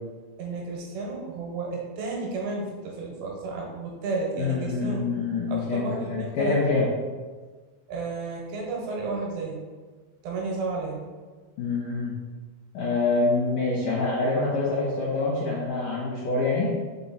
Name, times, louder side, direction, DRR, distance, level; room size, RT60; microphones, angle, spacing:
voice 1, 0.4-5.0 5.5-6.6 7.9-9.6 10.2-11.0, right 3 dB, 85° right, -1 dB, 3.5 m, -32 dB
voice 2, 4.4-6.9 11.6-12.1 12.7-16.7, left 3 dB, 65° left, -6 dB, 2.3 m, -26 dB
5.6 x 5.1 x 4.3 m, 1.4 s
omnidirectional pair, 4.9 m